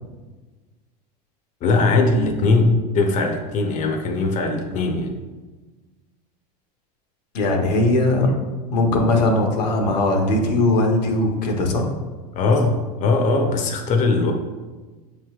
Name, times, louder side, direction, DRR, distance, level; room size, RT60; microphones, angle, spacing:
voice 1, 1.6-5.1 12.4-14.3, left 3 dB, 35° left, 3 dB, 0.6 m, -20 dB
voice 2, 7.3-8.3 8.7-11.9, left 2 dB, 80° left, 2 dB, 0.8 m, -19 dB
7.0 x 3.3 x 2.3 m, 1.3 s
hypercardioid pair, 100°, 21 cm